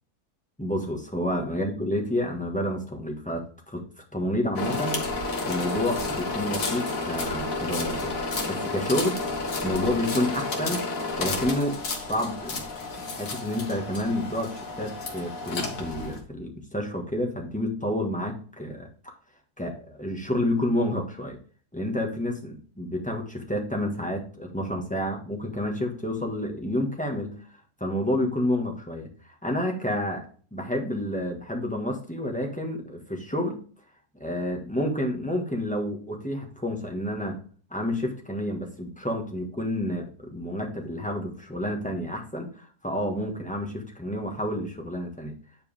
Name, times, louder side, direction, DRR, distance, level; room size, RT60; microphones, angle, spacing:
voice 1, 0.6-3.8 4.1-5.0 5.4-8.1 8.5-9.2 9.6-10.8 11.2-11.8 12.1-19.1 19.6-21.4 21.7-27.3 27.8-33.6 34.2-37.4 37.7-45.3, left 1 dB, 5° left, 1 dB, 1.3 m, -29 dB
sound 1, 4.5-16.2, left 3 dB, 60° left, 1.7 m, -31 dB
9.2 x 4.8 x 3.4 m, 0.42 s
omnidirectional pair, 1.7 m